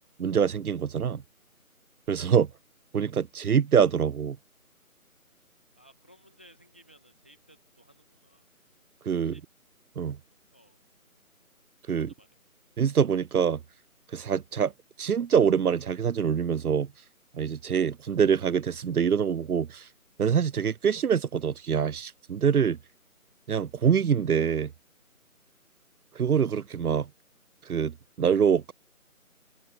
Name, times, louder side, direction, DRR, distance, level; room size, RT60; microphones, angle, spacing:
voice 1, 0.2-1.2 2.1-2.5 2.9-4.4 9.1-9.3 10.0-10.2 11.9-12.1 12.8-13.6 14.1-14.7 15.0-16.9 17.3-19.8 20.2-22.8 23.5-24.7 26.2-27.1 27.7-27.9 28.2-28.7, right 7 dB, 80° right, 0.7 m, -25 dB
voice 2, 5.7-8.5 9.1-9.4 10.5-10.8 11.9-12.3, equal, 5° left, 1.8 m, -58 dB
open air
figure-of-eight pair, 180°, 44 cm